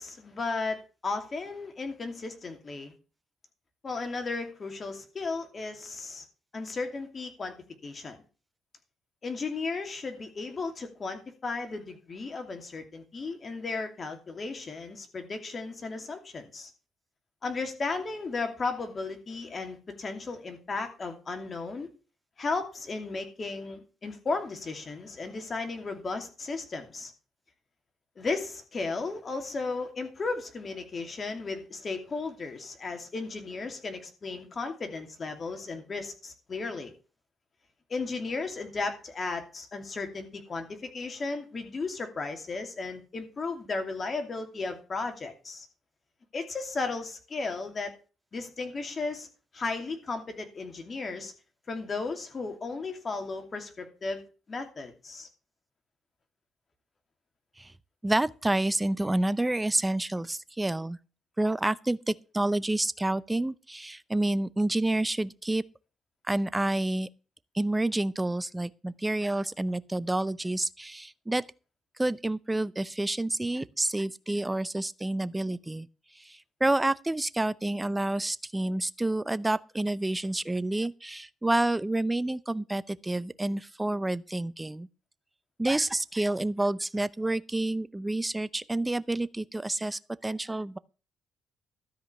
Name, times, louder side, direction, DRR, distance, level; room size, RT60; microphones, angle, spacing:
voice 1, 0.0-2.9 3.8-6.2 6.5-7.5 7.8-8.2 9.2-16.7 17.4-21.9 22.4-27.1 28.2-36.9 37.9-45.7 46.3-47.9 48.3-49.3 49.5-51.3 51.7-54.2 54.5-55.3, left 3 dB, 40° left, 2.6 m, -35 dB
voice 2, 58.0-61.0 61.4-65.6 66.3-67.1 67.5-71.4 72.0-75.9 76.6-84.9 85.6-90.8, right 2 dB, 15° right, 0.6 m, -29 dB
13.0 x 5.1 x 7.1 m
cardioid pair, 90°, 0 cm